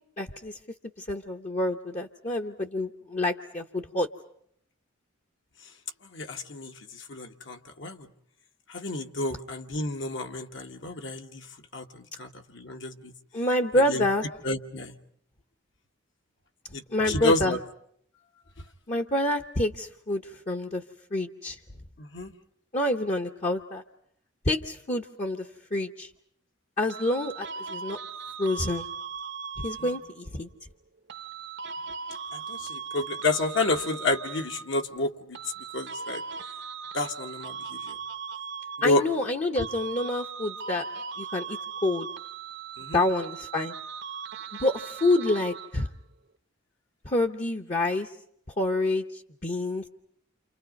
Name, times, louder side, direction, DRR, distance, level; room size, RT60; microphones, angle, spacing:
voice 1, 0.2-0.6 1.0-4.1 13.3-14.2 16.9-17.6 18.9-20.8 21.1-21.6 22.7-23.8 24.4-26.1 26.8-28.0 28.4-28.8 29.6-30.5 38.8-40.9 41.2-42.1 42.9-43.7 44.6-45.9 47.0-48.1 48.6-49.9, left 1 dB, 35° left, 3 dB, 1.0 m, -27 dB
voice 2, 6.1-8.1 8.7-11.4 11.7-13.1 13.9-14.0 14.4-14.9 16.7-17.6 22.0-22.3 29.8-29.9 32.3-35.4 35.7-36.2 36.9-38.0 38.8-39.0 42.8-43.0, left 2 dB, 65° left, 4 dB, 1.7 m, -30 dB
sound 1, 26.9-30.3 31.1-34.9 35.3-39.3 39.6-45.9, right 6 dB, 60° right, 0.9 m, -39 dB
29.5 x 27.5 x 5.3 m, 0.67 s
head